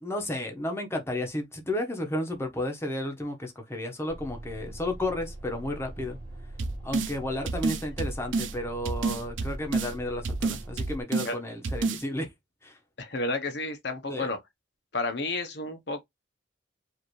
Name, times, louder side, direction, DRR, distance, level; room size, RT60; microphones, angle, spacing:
voice 1, 0.0-6.2 6.8-12.3 12.6-12.8 14.1-14.3, left 1 dB, 15° left, 1.2 m, -32 dB
sound 1, 4.1-11.0, right 1 dB, 30° right, 1.9 m, -42 dB
sound 2, 6.6-7.1 7.5-8.5 8.9-9.9 10.3-11.3 11.6-12.0, right 3 dB, 90° right, 0.8 m, -29 dB
voice 2, 13.0-14.4 14.9-16.0, left 2 dB, 60° left, 1.1 m, -31 dB
5.1 x 2.9 x 3.1 m
head